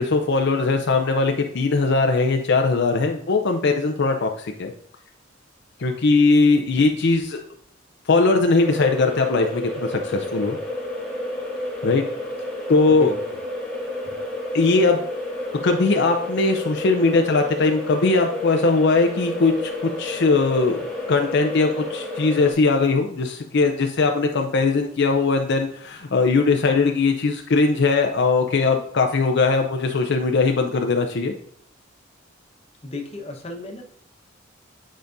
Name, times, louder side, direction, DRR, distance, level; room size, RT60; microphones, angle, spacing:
voice 1, 0.0-4.7 5.8-7.4 8.1-10.6 11.8-12.0 12.7-13.1 14.5-15.0 15.6-19.7 20.0-20.8 21.1-31.3, left 3 dB, 60° left, 4 dB, 0.5 m, -20 dB
sound 1, 8.6-22.5, left 1 dB, 5° left, 1.5 m, -30 dB
voice 2, 32.8-33.8, left 3 dB, 30° left, 1 dB, 1.1 m, -33 dB
9.4 x 5.0 x 2.6 m, 0.65 s
head